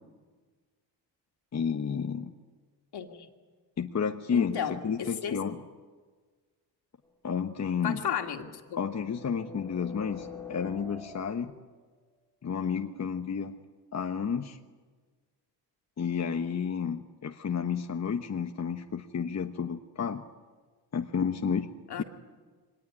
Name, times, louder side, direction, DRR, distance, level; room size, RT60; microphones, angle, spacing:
voice 1, 1.5-2.3 3.8-5.6 7.2-8.0 8.8-11.5 12.4-13.6 13.9-14.6 16.0-20.2 20.9-21.7, left 6 dB, 40° left, 4 dB, 1.2 m, -31 dB
voice 2, 2.9-3.3 4.3-5.4 7.8-8.8 21.9-22.0, left 8 dB, 65° left, 3 dB, 2.7 m, -33 dB
sound 1, 7.0-7.1 8.2-11.7, left 4 dB, 5° left, 2.4 m, -45 dB
23.5 x 19.0 x 9.9 m, 1.4 s
cardioid pair, 90°, 42 cm